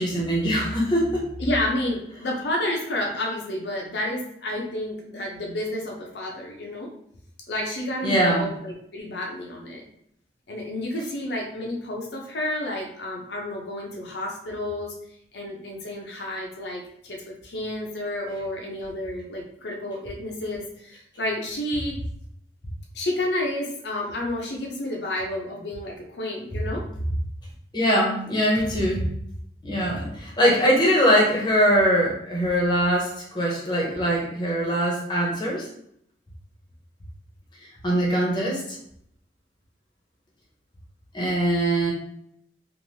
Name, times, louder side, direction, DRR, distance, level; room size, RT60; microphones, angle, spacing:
voice 1, 0.0-1.3 8.0-8.4 27.7-29.0 29.6-35.7 37.8-38.6 41.1-41.9, equal, 25° left, -4 dB, 0.8 m, -22 dB
voice 2, 1.4-6.9 7.5-9.8 10.5-15.0 15.3-22.0 22.9-26.9, left 1 dB, 75° left, -1 dB, 0.6 m, -30 dB
3.1 x 2.5 x 2.7 m, 0.71 s
head